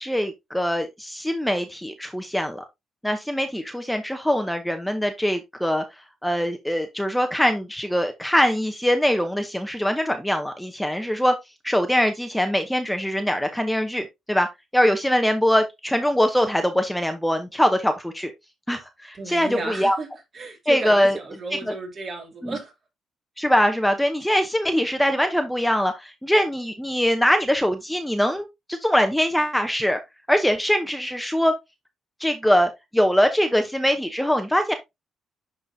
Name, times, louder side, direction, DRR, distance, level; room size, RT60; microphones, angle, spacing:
voice 1, 0.0-2.6 3.0-5.8 6.2-11.4 11.6-14.5 14.7-18.3 18.7-20.0 20.7-21.2 21.7-21.8 22.4-22.6 23.4-30.0 30.3-31.5 32.2-34.7, equal, 5° left, 0.8 m, -22 dB
voice 2, 19.1-20.1 20.3-22.7, right 3 dB, 45° right, 3.0 m, -33 dB
11.0 x 3.9 x 2.7 m
cardioid pair, 90°, 0 cm